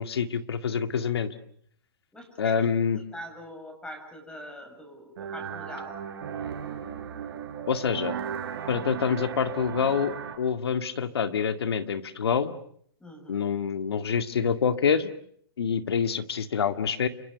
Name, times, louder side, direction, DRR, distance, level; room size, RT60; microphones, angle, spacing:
voice 1, 0.0-1.3 2.4-3.0 7.7-8.2 8.7-12.5 13.3-15.1 15.6-17.1, left 6 dB, 80° left, 9 dB, 2.2 m, -26 dB
voice 2, 2.1-2.6 2.9-6.0 13.0-13.5, equal, 5° left, 5 dB, 7.2 m, -43 dB
sound 1, 5.2-10.4, right 8 dB, 70° right, 4.7 m, -36 dB
29.0 x 25.0 x 6.9 m, 0.65 s
hypercardioid pair, 130°, 13 cm